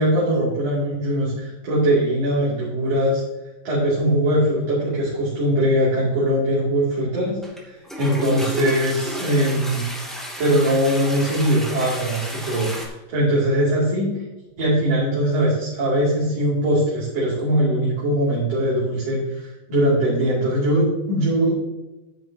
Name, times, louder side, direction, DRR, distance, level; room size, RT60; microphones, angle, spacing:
voice 1, 0.0-3.2 3.6-9.8 10.4-14.1 14.6-21.5, right 1 dB, 45° right, -8 dB, 3.8 m, -21 dB
Toilet flush, 7.4-7.6 7.8-12.9, equal, ahead, 1.9 m, -32 dB
12.5 x 10.0 x 2.9 m, 1.0 s
omnidirectional pair, 4.1 m